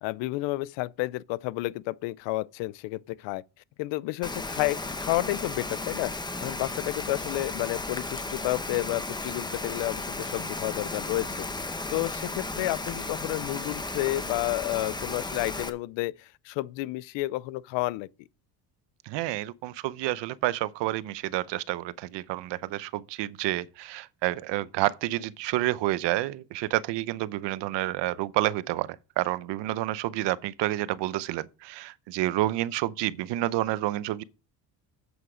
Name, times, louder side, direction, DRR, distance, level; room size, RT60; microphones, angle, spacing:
voice 1, 0.0-3.4 3.8-6.1 6.4-18.1, left 19 dB, 85° left, 0.6 m, -31 dB
Rain, 4.2-15.7, left 2 dB, 10° left, 0.9 m, -34 dB
voice 2, 19.1-34.2, right 16 dB, 70° right, 0.7 m, -29 dB
8.3 x 7.9 x 5.0 m
cardioid pair, 120°, 44 cm